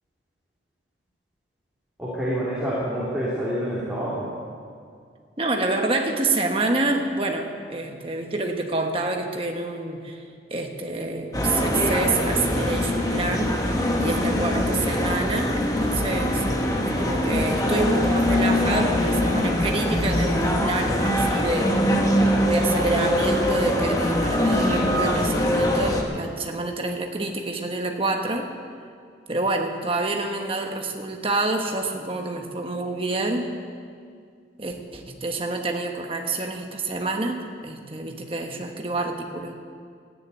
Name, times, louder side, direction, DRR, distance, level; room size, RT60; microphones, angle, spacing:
voice 1, 2.0-4.3, equal, 5° right, -9 dB, 3.0 m, -27 dB
voice 2, 5.4-10.2 10.5-21.9 22.5-28.5 29.3-33.6 34.6-39.6, right 2 dB, 30° right, 3 dB, 1.3 m, -27 dB
sound 1, 11.3-26.0, left 1 dB, 20° left, 1.4 m, -23 dB
13.5 x 9.8 x 9.3 m, 2.2 s
head